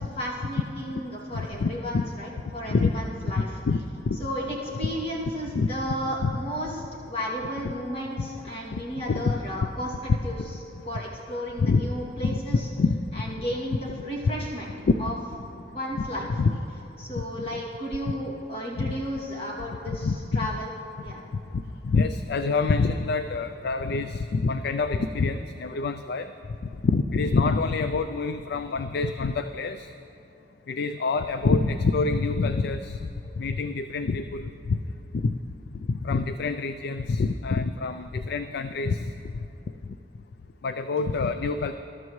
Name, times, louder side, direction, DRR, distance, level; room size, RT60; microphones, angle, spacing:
voice 1, 0.2-3.5 4.2-9.9 10.2-10.4 10.8-12.7 13.1-14.7 15.0-15.1 15.7-16.3 17.0-20.7 21.0-21.2, equal, 35° left, -5 dB, 2.5 m, -33 dB
voice 2, 1.3-2.0 2.7-2.9 3.2-4.2 4.8-4.9 5.5-5.7 6.2-6.4 8.2-8.3 8.7-9.3 9.6-9.7 11.6-11.9 12.2-13.0 14.9-15.0 16.4-16.6 17.2-17.3 17.5-17.6 18.1-18.2 18.8-19.0 19.9-20.2 21.3-26.3 26.8-29.9 30.7-33.1 33.4-34.8 35.1-35.4 35.8-39.1 39.9-40.0 40.6-41.7, left 4 dB, 60° left, 10 dB, 0.4 m, -26 dB
21.0 x 12.5 x 3.1 m, 2.8 s
head